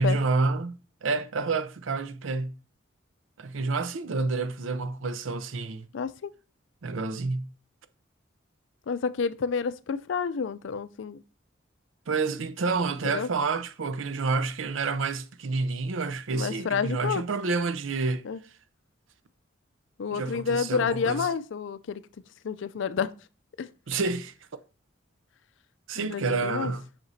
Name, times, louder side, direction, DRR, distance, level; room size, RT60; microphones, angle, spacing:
voice 1, 0.0-2.5 3.4-5.9 6.8-7.5 12.1-18.2 20.1-21.3 23.9-24.6 25.9-26.8, right 3 dB, 85° right, 0.6 m, -29 dB
voice 2, 5.9-6.3 8.9-11.2 13.0-13.3 16.3-17.2 18.2-18.4 20.0-22.0 22.4-23.1 23.6-23.7 25.9-26.7, left 6 dB, 70° left, 0.4 m, -29 dB
7.9 x 5.9 x 2.7 m
head